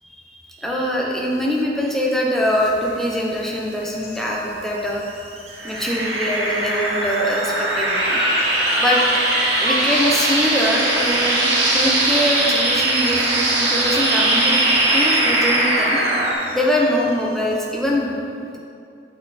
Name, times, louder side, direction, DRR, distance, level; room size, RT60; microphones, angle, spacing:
voice 1, 0.3-5.0 5.6-8.2 8.8-9.0 9.6-14.6 14.9-18.6, equal, ahead, -3 dB, 0.8 m, -23 dB
sound 1, 2.4-15.5, left 2 dB, 65° left, 1.2 m, -34 dB
Alarm / Boiling, 2.9-17.7, right 5 dB, 35° right, 0.6 m, -33 dB
sound 2, 5.6-16.3, right 1 dB, 80° right, 1.5 m, -20 dB
8.3 x 4.4 x 4.2 m, 2.5 s
head